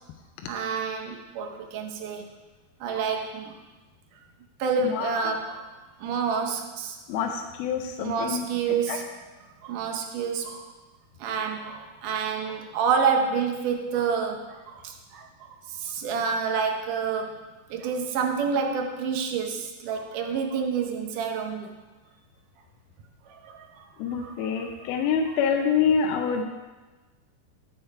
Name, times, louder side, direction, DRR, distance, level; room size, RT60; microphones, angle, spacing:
voice 1, 0.5-2.3 2.8-3.6 4.6-5.6 6.0-7.0 8.0-9.1 9.6-10.7 11.2-17.4 17.7-21.7 23.3-23.8 24.2-24.9, right 6 dB, 75° right, 4 dB, 2.0 m, -28 dB
voice 2, 4.9-5.3 7.1-7.3 7.6-8.5 8.9-9.0 24.0-26.4, left 6 dB, 80° left, 3 dB, 2.4 m, -26 dB
14.0 x 6.3 x 4.6 m, 1.2 s
omnidirectional pair, 4.5 m